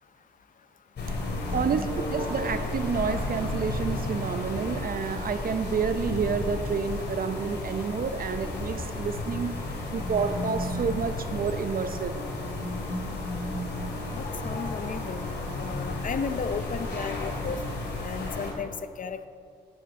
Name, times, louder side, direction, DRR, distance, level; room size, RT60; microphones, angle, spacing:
sound 1, 1.0-18.5, left 2 dB, 70° left, 2.6 m, -33 dB
voice 1, 1.5-9.5 9.9-12.2, right 6 dB, 55° right, 10 dB, 0.7 m, -29 dB
voice 2, 14.1-15.3 15.6-17.6 18.0-18.7 19.0-19.3, left 6 dB, 50° left, 11 dB, 0.6 m, -34 dB
11.5 x 10.5 x 3.8 m, 2.3 s
cardioid pair, 60°, 18 cm